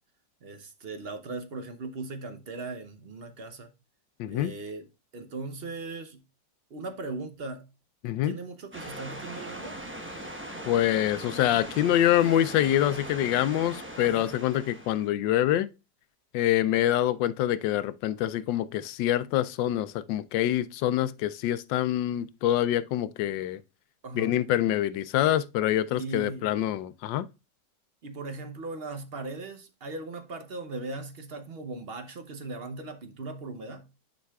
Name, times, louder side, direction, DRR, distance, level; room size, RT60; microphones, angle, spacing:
voice 1, 0.4-3.7 4.3-4.8 5.1-6.2 6.7-7.6 8.2-9.8 14.0-14.4 24.0-24.4 25.9-26.7 28.0-33.9, right 3 dB, 50° right, 0.7 m, -38 dB
voice 2, 4.2-4.5 8.0-8.3 10.6-15.7 16.3-23.6 24.1-27.3, left 12 dB, 85° left, 1.3 m, -25 dB
sound 1, 8.7-15.1, right 1 dB, 10° right, 0.5 m, -40 dB
10.5 x 5.1 x 2.3 m
omnidirectional pair, 2.0 m